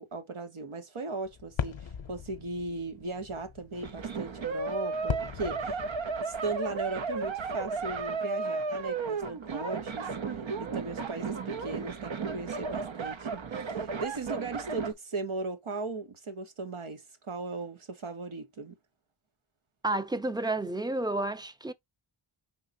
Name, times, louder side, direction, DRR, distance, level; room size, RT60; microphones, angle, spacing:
voice 1, 0.0-5.8 6.2-18.8, right 3 dB, 85° right, 1.3 m, -38 dB
sound 1, 1.3-6.2, left 7 dB, 65° left, 0.7 m, -39 dB
sound 2, 3.7-14.9, right 4 dB, 70° right, 0.8 m, -34 dB
voice 2, 19.8-21.7, right 2 dB, 10° right, 0.5 m, -30 dB
5.5 x 3.7 x 2.6 m
wide cardioid pair, 75°, 48 cm